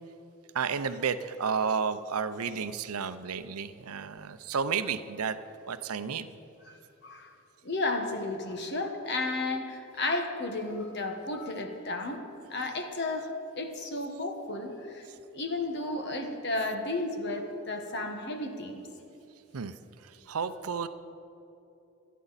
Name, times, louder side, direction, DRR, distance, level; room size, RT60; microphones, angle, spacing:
voice 1, 0.5-5.4 5.7-6.3 19.5-19.7 20.3-20.9, right 6 dB, 85° right, 12 dB, 0.6 m, -31 dB
voice 2, 7.6-12.2 12.5-13.3 13.6-15.1 15.3-18.8, left 2 dB, 50° left, 4 dB, 1.4 m, -33 dB
25.5 x 9.2 x 4.1 m, 2.9 s
head